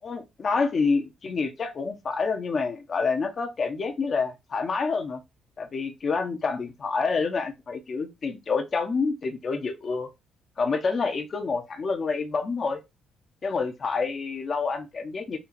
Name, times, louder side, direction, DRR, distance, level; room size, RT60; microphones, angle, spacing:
voice 1, 0.0-5.2 5.6-10.1 10.6-12.8 13.4-15.4, left 4 dB, 45° left, 1.0 m, -28 dB
4.4 x 2.8 x 4.2 m
cardioid pair, 90°, 0 cm